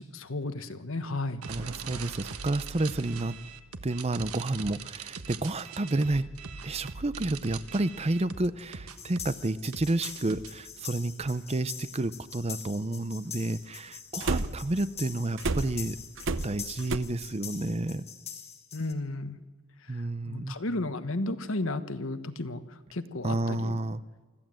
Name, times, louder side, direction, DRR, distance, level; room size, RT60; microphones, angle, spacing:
voice 1, 0.0-1.4 18.7-19.4 19.8-23.8, left 2 dB, 65° left, 10 dB, 1.3 m, -34 dB
sound 1, 1.4-10.5, right 5 dB, 85° right, 1.4 m, -42 dB
voice 2, 1.5-3.4 3.8-6.3 6.6-16.0 16.4-18.1 19.9-20.6 23.2-24.0, right 2 dB, 30° right, 14 dB, 0.6 m, -30 dB
sound 2, 8.9-18.9, left 8 dB, 30° left, 1.9 m, -44 dB
sound 3, 11.2-11.3 14.2-14.8 15.4-17.0, right 3 dB, 60° right, 0.8 m, -30 dB
25.0 x 15.0 x 7.7 m, 1.4 s
head